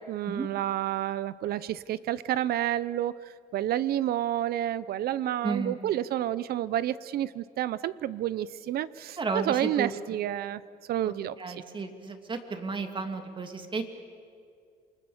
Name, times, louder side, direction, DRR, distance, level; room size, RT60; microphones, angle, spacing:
voice 1, 0.0-3.1 3.5-10.6 10.9-11.6, right 12 dB, 65° right, 17 dB, 0.7 m, -30 dB
voice 2, 5.4-5.8 9.2-9.9 11.0-11.1 11.4-13.9, right 4 dB, 30° right, 5 dB, 2.6 m, -33 dB
28.5 x 23.5 x 7.2 m, 2.3 s
cardioid pair, 110°, 17 cm